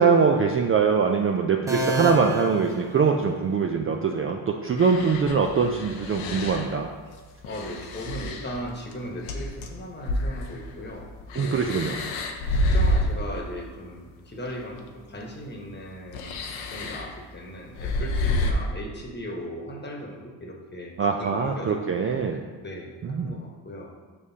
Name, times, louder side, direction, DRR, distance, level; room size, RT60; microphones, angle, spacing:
voice 1, 0.0-6.9 11.3-12.0 21.0-22.4 23.0-23.3, right 5 dB, 30° right, 2 dB, 0.5 m, -23 dB
sound 1, 1.7-3.6, right 1 dB, 5° right, 1.1 m, -30 dB
sound 2, 4.8-6.7 7.4-9.8 10.0-13.3 14.5-14.6 16.1-17.1 17.8-18.5, left 1 dB, 90° left, 0.8 m, -28 dB
voice 2, 7.4-11.8 12.5-21.8 22.6-23.9, equal, 20° left, 0 dB, 1.2 m, -38 dB
7.0 x 4.9 x 2.8 m, 1.4 s
supercardioid pair, 70°, 46 cm